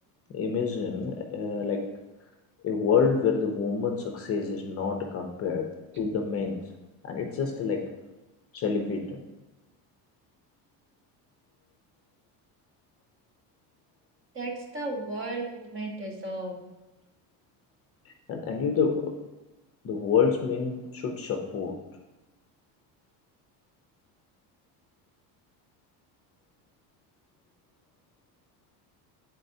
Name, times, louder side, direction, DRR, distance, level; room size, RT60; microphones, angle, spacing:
voice 1, 0.3-1.9 2.6-5.7 6.0-6.6 7.0-7.9 8.5-9.2 18.3-19.1 19.8-21.8, left 5 dB, 35° left, 3 dB, 0.6 m, -27 dB
voice 2, 14.3-16.5, right 2 dB, 30° right, -1 dB, 1.1 m, -34 dB
9.1 x 4.1 x 2.7 m, 1.1 s
cardioid pair, 155°, 41 cm